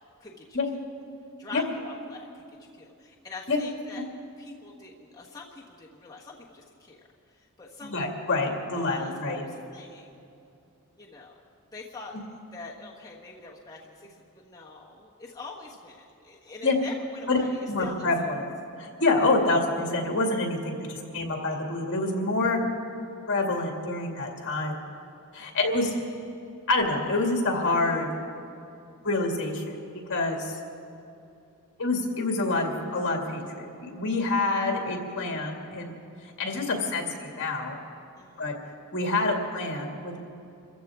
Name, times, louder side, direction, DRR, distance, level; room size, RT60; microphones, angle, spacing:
voice 1, 0.2-0.6 1.4-2.4 2.7-4.1 4.4-7.0 7.3-8.1 8.7-10.1 11.0-11.4 11.7-12.2 12.5-18.0 20.8-20.9 25.4-25.6 30.8-30.9 38.2-38.6, left 3 dB, 15° left, -4 dB, 1.3 m, -44 dB
voice 2, 7.8-9.4 16.6-16.8 17.3-17.4 17.7-18.4 18.8-22.6 23.3-24.8 25.3-25.9 26.7-28.1 29.0-29.8 30.1-30.6 31.8-36.0 36.4-37.8 38.4-38.5 38.9-40.2, left 2 dB, 55° left, 1 dB, 2.3 m, -27 dB
26.0 x 15.0 x 3.6 m, 2.7 s
head